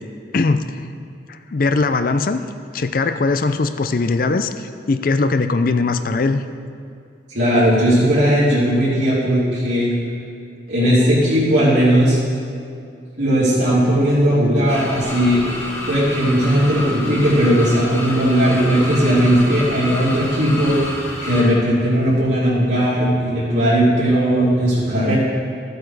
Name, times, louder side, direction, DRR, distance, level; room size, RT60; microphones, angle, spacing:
voice 1, 0.3-0.8 1.3-2.4 2.7-6.4, left 3 dB, 45° left, 9 dB, 0.4 m, -20 dB
voice 2, 7.3-9.9 10.7-12.2 13.2-15.4 15.9-20.8 21.2-25.1, equal, 70° right, -11 dB, 3.0 m, -17 dB
sound 1, 14.7-21.4, left 1 dB, 15° left, 2.0 m, -29 dB
14.0 x 7.9 x 4.8 m, 2.4 s
head